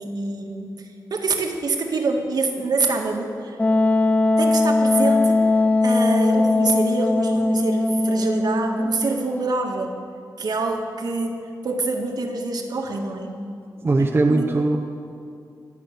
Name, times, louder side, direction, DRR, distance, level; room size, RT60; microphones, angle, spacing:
voice 1, 0.0-3.6 4.4-5.4 5.8-10.0 10.4-13.3 14.0-14.5, right 3 dB, 65° right, 2 dB, 1.9 m, -26 dB
Wind instrument woodwind instrument, 3.6-9.1, left 2 dB, 20° left, 0.6 m, -19 dB
voice 2, 13.8-14.8, right 2 dB, 35° right, 1 dB, 0.9 m, -19 dB
24.5 x 8.6 x 6.8 m, 2.4 s
wide cardioid pair, 135°, 7 cm